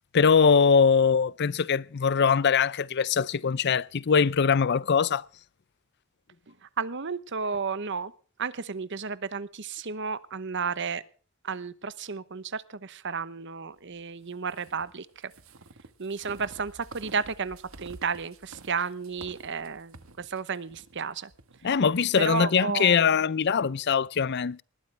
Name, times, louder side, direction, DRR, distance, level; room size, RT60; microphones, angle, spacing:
voice 1, 0.1-5.3 21.6-24.6, left 6 dB, 55° left, 0.5 m, -22 dB
voice 2, 6.8-8.1 8.4-11.0 11.4-15.1 16.0-21.3 22.2-23.1, right 5 dB, 60° right, 1.0 m, -32 dB
sound 1, 14.5-22.4, right 3 dB, 80° right, 1.5 m, -50 dB
20.0 x 13.0 x 3.4 m
head